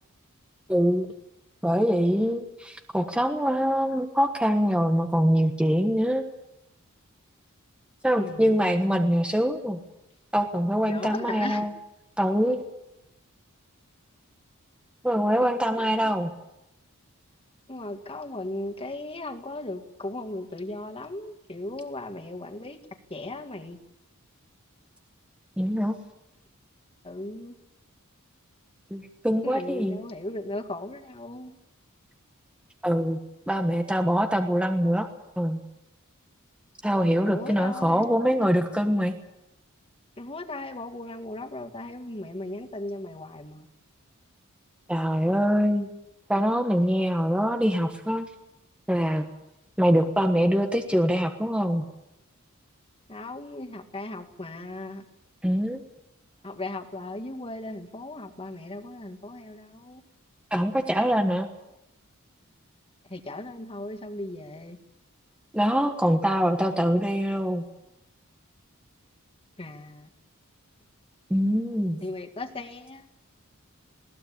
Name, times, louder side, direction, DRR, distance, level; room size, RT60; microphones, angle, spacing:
voice 1, 0.7-1.1 1.6-6.2 8.0-9.8 10.3-11.7 12.2-12.6 15.0-16.3 25.6-26.0 28.9-30.0 32.8-33.2 33.5-35.1 35.4-35.6 36.8-39.2 44.9-45.9 46.3-48.3 48.9-49.2 49.8-51.8 55.4-55.8 60.5-61.5 65.5-67.6 71.3-72.0, equal, 5° right, 5 dB, 1.3 m, -24 dB
voice 2, 8.2-8.8 10.9-11.7 15.4-15.9 17.7-22.8 23.1-23.8 27.0-27.5 29.4-31.6 37.3-38.1 40.2-43.7 53.1-55.0 56.4-60.0 63.1-64.8 69.6-70.1 72.0-73.1, left 2 dB, 25° left, 7 dB, 1.9 m, -37 dB
20.5 x 18.0 x 8.6 m, 0.89 s
head